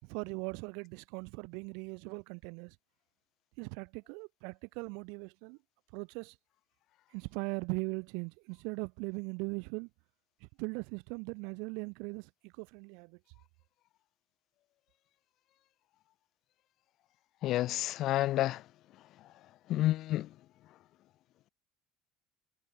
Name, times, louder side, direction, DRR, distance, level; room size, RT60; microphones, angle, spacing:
voice 1, 0.0-2.8 3.6-5.6 5.9-6.4 7.1-9.9 10.4-13.2, right 34 dB, 80° right, 7.6 m, -40 dB
voice 2, 17.4-18.6 19.7-20.3, left 15 dB, 50° left, 2.2 m, -29 dB
cardioid pair, 145°, 0 cm